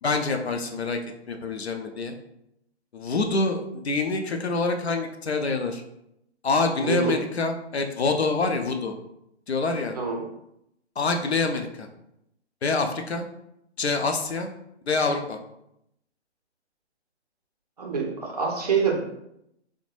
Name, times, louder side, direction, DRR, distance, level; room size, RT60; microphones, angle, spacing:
voice 1, 0.0-1.0 1.3-2.1 2.9-5.8 6.4-8.9 9.5-10.0 11.0-11.9 12.6-13.2 13.8-14.5 14.9-15.4, left 3 dB, 70° left, 5 dB, 0.5 m, -26 dB
voice 2, 6.8-7.2 10.0-10.2 17.8-19.0, right 5 dB, 35° right, 0 dB, 0.5 m, -25 dB
3.5 x 2.1 x 3.1 m, 0.80 s
figure-of-eight pair, 135°, 34 cm